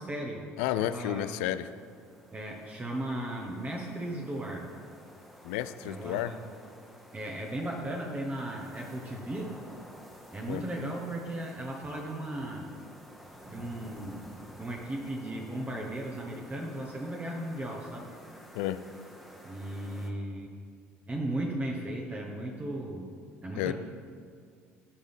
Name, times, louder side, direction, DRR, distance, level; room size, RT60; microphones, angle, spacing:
voice 1, 0.0-0.4 0.8-1.3 2.3-4.7 5.8-6.4 7.1-9.6 10.3-12.7 13.4-18.2 19.4-20.5 21.1-23.1 23.4-23.7, right 1 dB, 20° right, -1 dB, 1.2 m, -36 dB
voice 2, 0.6-1.7 5.4-6.4 10.5-10.6 18.5-18.8 23.6-23.7, left 13 dB, 70° left, 14 dB, 0.4 m, -31 dB
sound 1, 0.8-20.1, equal, ahead, 1.3 m, -52 dB
14.5 x 5.3 x 3.5 m, 2.1 s
hypercardioid pair, 60°, 7 cm